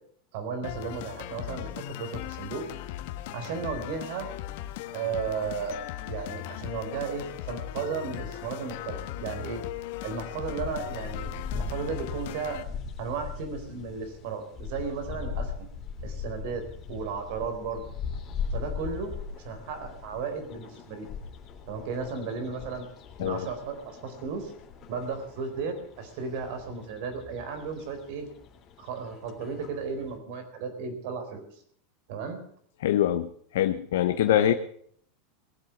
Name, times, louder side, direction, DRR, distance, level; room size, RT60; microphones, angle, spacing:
voice 1, 0.3-2.7 3.3-4.3 4.9-5.8 6.1-9.6 10.0-12.6 13.0-15.7 16.0-17.8 18.5-21.1 21.7-22.8 23.2-24.5 24.9-28.3 28.8-31.5 32.1-32.4 34.3-34.6, right 5 dB, 60° right, 7 dB, 4.2 m, -34 dB
sound 1, 0.6-12.6, left 13 dB, 60° left, 1.4 m, -38 dB
sound 2, 10.4-30.2, left 6 dB, 30° left, 3.4 m, -40 dB
voice 2, 32.8-34.5, left 12 dB, 85° left, 8 dB, 0.9 m, -24 dB
21.5 x 8.0 x 7.2 m, 0.62 s
supercardioid pair, 160°, 0 cm